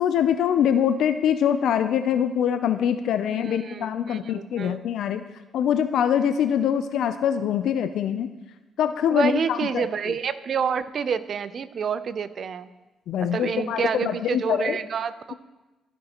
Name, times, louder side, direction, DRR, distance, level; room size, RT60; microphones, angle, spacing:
voice 1, 0.0-5.3 5.5-8.3 8.8-10.1 13.1-14.8, left 9 dB, 75° left, 10 dB, 0.4 m, -24 dB
voice 2, 3.3-4.8 9.1-12.7 13.2-15.3, right 6 dB, 55° right, 15 dB, 0.4 m, -28 dB
14.5 x 6.5 x 2.9 m, 1.1 s
cardioid pair, 90°, 0 cm